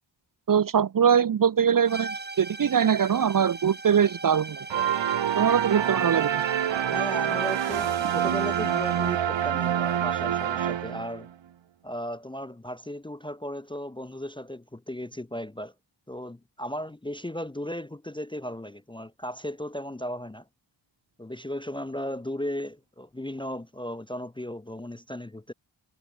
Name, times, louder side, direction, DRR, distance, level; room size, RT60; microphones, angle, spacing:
voice 1, 0.5-4.7 5.4-6.4, right 8 dB, 45° right, 0.6 m, -22 dB
sound 1, 1.9-9.3, right 3 dB, 20° right, 1.6 m, -41 dB
sound 2, 4.7-11.3, right 9 dB, 70° right, 1.0 m, -26 dB
voice 2, 6.9-11.3 11.8-15.7 16.1-20.4 21.2-25.5, equal, 10° left, 0.5 m, -36 dB
wide cardioid pair, 120°, 46 cm